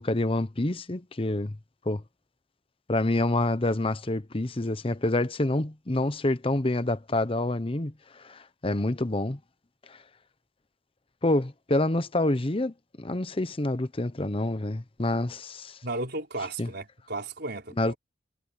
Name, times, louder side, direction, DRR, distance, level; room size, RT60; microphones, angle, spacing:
voice 1, 0.0-1.6 1.9-2.0 2.9-9.4 11.2-15.8 16.6-16.7 17.8-17.9, left 2 dB, 30° left, 0.9 m, -27 dB
voice 2, 15.8-18.0, right 2 dB, 55° right, 5.2 m, -34 dB
head